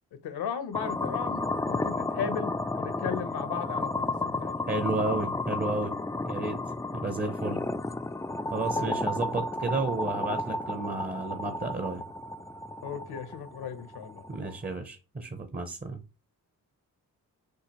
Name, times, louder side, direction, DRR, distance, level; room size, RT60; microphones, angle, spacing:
voice 1, 0.1-4.5 8.7-9.0 12.8-14.2, left 7 dB, 75° left, 0.9 m, -36 dB
sound 1, 0.7-14.7, left 2 dB, 10° left, 0.3 m, -33 dB
voice 2, 4.7-5.9 6.2-6.6 6.9-7.6 8.5-12.0 14.3-16.0, right 3 dB, 25° right, 0.7 m, -32 dB
6.5 x 2.4 x 2.9 m
cardioid pair, 60°, 38 cm